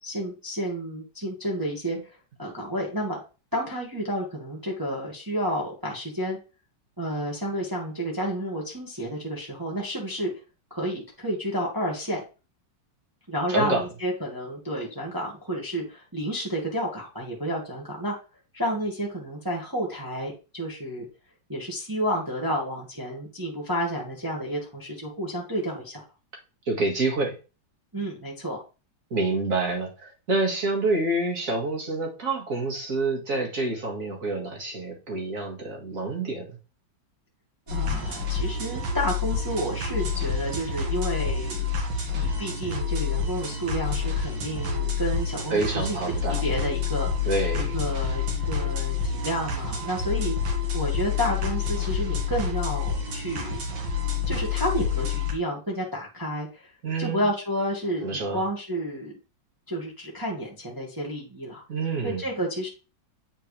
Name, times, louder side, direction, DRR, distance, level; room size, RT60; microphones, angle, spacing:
voice 1, 0.0-3.2 3.5-6.4 7.0-10.3 10.7-12.2 13.3-18.2 18.5-21.0 21.5-26.0 27.9-28.6 37.7-41.7 42.1-46.0 46.3-47.3 47.6-53.6 54.3-56.7 57.0-59.1 59.7-61.6 62.0-62.7, equal, 10° right, -3 dB, 1.5 m, -30 dB
voice 2, 13.5-13.8 26.7-27.3 29.1-36.6 45.5-46.4 47.2-47.8 56.8-57.3 58.0-58.4 61.7-62.2, right 2 dB, 45° right, 1 dB, 2.2 m, -27 dB
sound 1, 37.7-55.3, left 6 dB, 70° right, 2.3 m, -28 dB
9.0 x 4.5 x 3.3 m, 0.32 s
omnidirectional pair, 2.1 m